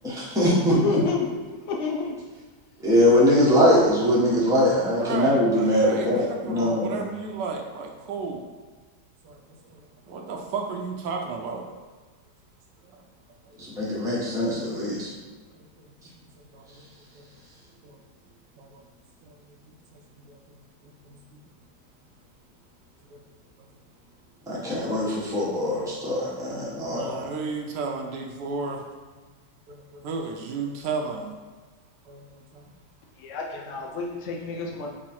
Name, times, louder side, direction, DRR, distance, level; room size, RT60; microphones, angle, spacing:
voice 1, 0.0-1.0 2.8-7.0 13.7-15.1 24.5-27.2, equal, 5° right, -7 dB, 0.7 m, -22 dB
voice 2, 0.7-1.3 1.7-2.2 33.2-34.9, left 4 dB, 85° left, 0 dB, 0.6 m, -28 dB
voice 3, 5.0-8.5 9.2-9.4 9.7-11.7 12.8-13.0 13.5-13.6 15.5-15.9 16.4-16.9 17.1-17.3 17.8-18.0 18.6-18.8 19.2-21.4 23.1-23.2 23.6-23.7 26.9-28.9 29.1-29.2 29.7-31.3 32.1-32.7 33.5-33.8, right 4 dB, 75° right, 1 dB, 1.2 m, -34 dB
5.1 x 2.3 x 4.2 m, 1.4 s
omnidirectional pair, 1.9 m